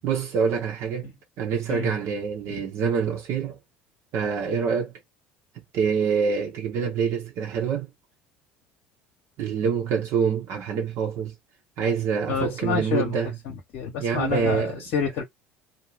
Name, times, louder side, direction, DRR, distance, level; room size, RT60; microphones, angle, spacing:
voice 1, 0.0-1.1 1.4-3.6 4.1-4.9 5.7-7.9 9.4-11.3 11.8-13.4 14.0-14.8, right 6 dB, 55° right, 0.9 m, -26 dB
voice 2, 12.3-13.1 13.5-14.7 14.9-15.2, left 6 dB, 60° left, 0.8 m, -28 dB
2.7 x 2.1 x 3.2 m
figure-of-eight pair, 65°, 6 cm